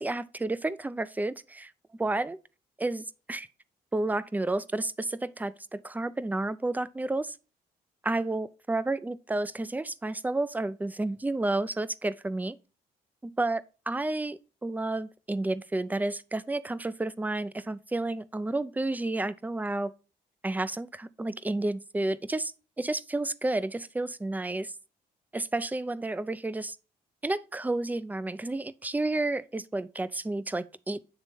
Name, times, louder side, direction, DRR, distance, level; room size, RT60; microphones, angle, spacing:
voice 1, 0.0-1.7 2.0-2.4 2.8-3.5 3.9-7.4 8.0-12.6 13.2-19.9 20.4-22.5 22.8-24.7 25.3-26.8 27.2-31.1, right 2 dB, 10° right, 0.4 m, -31 dB
8.6 x 3.3 x 4.4 m
supercardioid pair, 60°, 17 cm